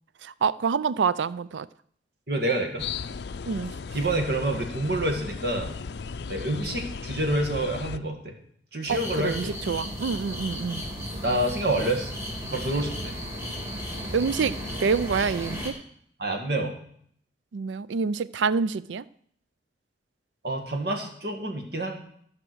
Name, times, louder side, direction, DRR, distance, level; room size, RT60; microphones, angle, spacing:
voice 1, 0.2-1.7 3.5-3.7 8.9-10.9 14.1-15.7 17.5-19.0, right 5 dB, 85° right, 0.4 m, -27 dB
voice 2, 2.3-2.9 3.9-5.8 6.3-8.4 8.7-9.5 11.2-12.1 12.5-13.1 16.2-16.8 20.4-22.0, right 1 dB, 60° right, 1.9 m, -27 dB
sound 1, 2.8-8.0, left 5 dB, 70° left, 0.4 m, -36 dB
sound 2, 8.9-15.7, equal, 15° right, 3.0 m, -34 dB
14.0 x 6.1 x 6.3 m
head